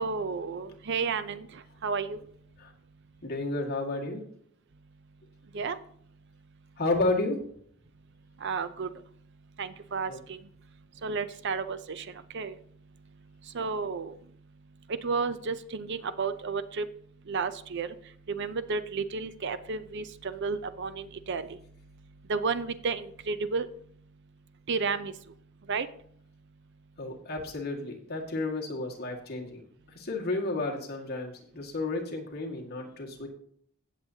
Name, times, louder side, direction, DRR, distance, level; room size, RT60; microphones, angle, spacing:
voice 1, 0.0-1.5 1.8-2.2 5.5-5.8 8.4-8.9 9.6-10.4 11.0-12.1 12.3-12.5 13.5-14.1 15.0-16.9 17.3-17.9 18.3-21.5 22.3-23.7 24.7-25.1 25.7-25.9, right 4 dB, 55° right, 12 dB, 0.5 m, -32 dB
voice 2, 3.2-4.2 6.8-7.4 10.1-10.2 11.1-11.2 13.6-13.7 27.0-29.6 29.9-33.3, left 2 dB, 45° left, -1 dB, 1.9 m, -32 dB
16.0 x 7.4 x 2.8 m, 0.62 s
head